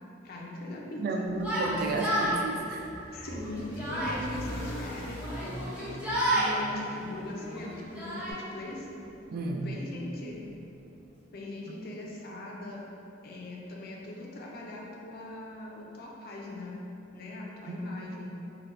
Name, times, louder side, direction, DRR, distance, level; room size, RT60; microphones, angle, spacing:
voice 1, 0.2-1.3 3.1-9.0 9.6-10.4 11.3-12.8 13.2-16.8 17.1-18.4, left 2 dB, 55° left, -2 dB, 0.5 m, -40 dB
voice 2, 1.0-2.9 9.3-9.7 17.7-17.8, right 3 dB, 55° right, 2 dB, 0.3 m, -32 dB
sound 1, 1.3-9.6, equal, 30° left, 0.8 m, -43 dB
Yell, 1.3-2.3 3.2-4.2 5.2-6.5 7.4-8.3, right 1 dB, 10° right, 0.7 m, -30 dB
4.4 x 2.2 x 2.5 m, 2.8 s
head